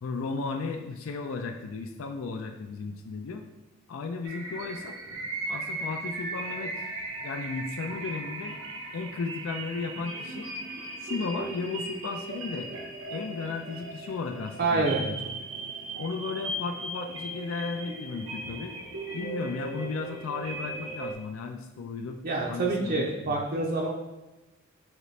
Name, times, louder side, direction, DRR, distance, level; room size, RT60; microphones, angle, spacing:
voice 1, 0.0-3.4 3.9-5.0 5.5-6.8 7.2-8.5 8.9-10.5 11.0-12.7 13.1-15.2 16.0-18.7 19.1-22.2 22.5-23.5, left 4 dB, 75° left, 4 dB, 0.4 m, -35 dB
sound 1, 4.2-21.1, right 2 dB, 85° right, 0.7 m, -37 dB
voice 2, 14.6-15.0 22.2-23.9, right 3 dB, 45° right, -2 dB, 0.5 m, -27 dB
3.9 x 3.1 x 3.1 m, 1.1 s
head